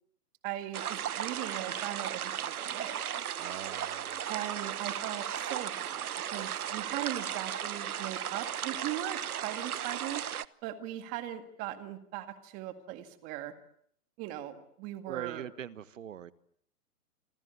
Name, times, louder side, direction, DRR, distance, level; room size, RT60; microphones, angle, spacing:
voice 1, 0.4-3.0 4.3-10.2 10.6-13.5 14.2-15.4, right 13 dB, 20° right, 2.0 m, -39 dB
sound 1, 0.7-10.5, right 9 dB, 70° right, 1.3 m, -36 dB
voice 2, 3.4-4.2 15.1-16.3, right 9 dB, 55° right, 1.6 m, -42 dB
27.0 x 26.5 x 8.3 m
hypercardioid pair, 165°, 45 cm